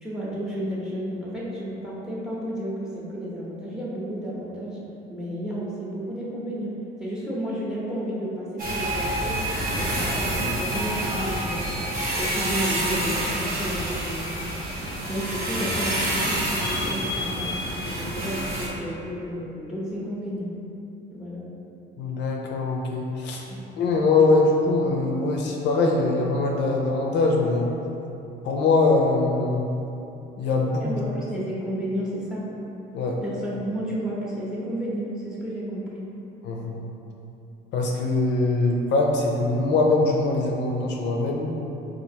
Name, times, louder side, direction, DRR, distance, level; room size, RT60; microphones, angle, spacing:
voice 1, 0.0-4.8 5.1-6.7 7.0-9.4 9.8-11.7 12.2-14.3 15.1-20.5 21.1-21.4 23.5-23.6 30.8-32.5 33.2-36.0, equal, 5° right, -6 dB, 0.7 m, -32 dB
sound 1, 8.6-18.7, right 1 dB, 45° right, 0.9 m, -27 dB
voice 2, 22.0-23.5 23.8-27.7 28.4-29.7 30.4-30.9 32.9-33.2 36.4-36.8 37.7-41.5, left 3 dB, 65° left, 0 dB, 0.4 m, -22 dB
4.4 x 2.4 x 2.7 m, 2.9 s
cardioid pair, 135°, 20 cm